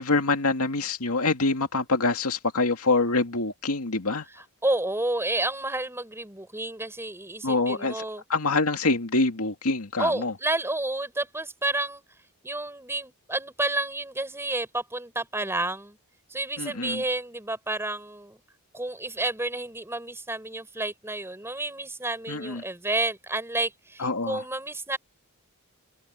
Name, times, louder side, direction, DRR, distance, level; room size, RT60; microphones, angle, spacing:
voice 1, 0.0-4.3 7.4-8.0 8.3-10.3 16.6-17.0 22.3-22.6 24.0-24.4, left 3 dB, 75° left, 2.4 m, -25 dB
voice 2, 4.6-8.2 10.0-12.0 12.4-16.0 16.3-18.4 18.7-25.0, right 2 dB, 10° right, 4.9 m, -30 dB
head